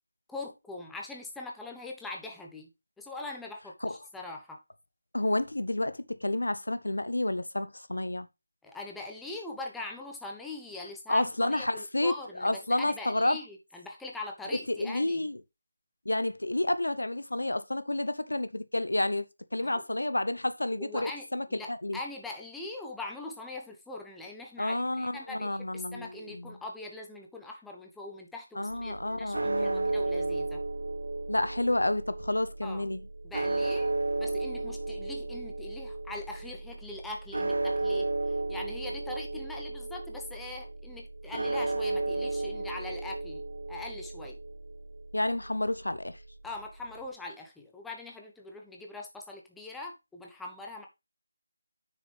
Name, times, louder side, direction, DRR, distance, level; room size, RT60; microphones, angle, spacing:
voice 1, 0.3-2.7 3.0-4.6 8.6-15.3 19.6-19.8 20.8-30.6 32.6-32.9 33.2-44.4 46.4-50.9, left 2 dB, 5° left, 1.0 m, -42 dB
voice 2, 5.1-8.3 11.1-13.4 14.7-15.4 16.0-19.3 19.5-22.0 24.6-26.6 28.6-29.9 31.3-33.1 45.1-46.2, left 1 dB, 80° left, 0.8 m, -30 dB
sound 1, 28.7-47.1, right 2 dB, 65° right, 1.2 m, -34 dB
8.7 x 6.4 x 3.3 m
figure-of-eight pair, 160°, 0 cm